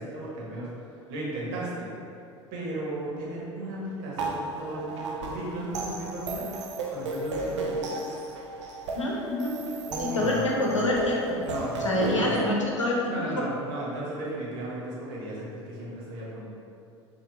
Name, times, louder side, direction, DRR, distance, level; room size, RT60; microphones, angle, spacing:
voice 1, 0.0-1.9 2.5-6.5 6.9-8.0 9.9-10.8 11.4-12.4 13.1-16.5, right 1 dB, 55° right, -5 dB, 1.3 m, -35 dB
sound 1, 4.2-12.5, right 2 dB, 70° right, 0.6 m, -33 dB
voice 2, 9.0-9.6 10.0-11.4 11.8-13.0, left 1 dB, 85° left, -3 dB, 0.8 m, -26 dB
5.8 x 2.7 x 3.3 m, 2.6 s
figure-of-eight pair, 75°, 15 cm